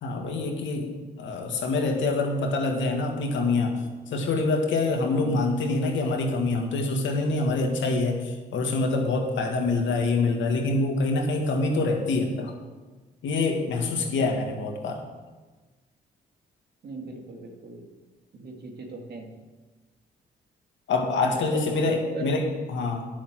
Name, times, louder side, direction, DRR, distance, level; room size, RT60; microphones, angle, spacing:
voice 1, 0.0-0.9 1.2-3.7 4.1-12.5 13.2-15.0 20.9-23.1, left 3 dB, 75° left, 2 dB, 2.0 m, -25 dB
voice 2, 16.8-17.9 18.3-19.3 21.5-22.3, right 3 dB, 60° right, 2 dB, 2.3 m, -38 dB
9.9 x 6.6 x 7.7 m, 1.3 s
supercardioid pair, 55°, 20 cm